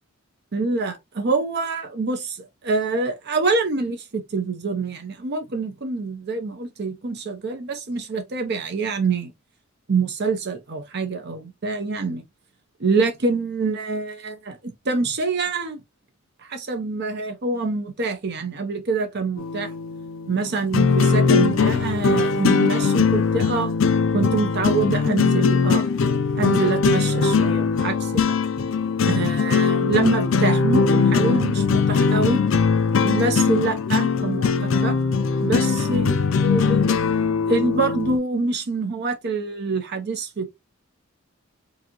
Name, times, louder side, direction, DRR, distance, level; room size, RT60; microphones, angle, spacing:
voice 1, 0.5-9.3 9.9-12.2 12.8-15.8 16.4-19.7 20.3-23.7 24.1-25.9 26.3-28.4 29.0-32.4 33.0-34.9 35.4-37.0 37.5-40.5, right 3 dB, 55° right, 0.6 m, -25 dB
sound 1, 19.4-38.2, left 5 dB, 70° left, 0.5 m, -20 dB
4.7 x 2.7 x 2.9 m
head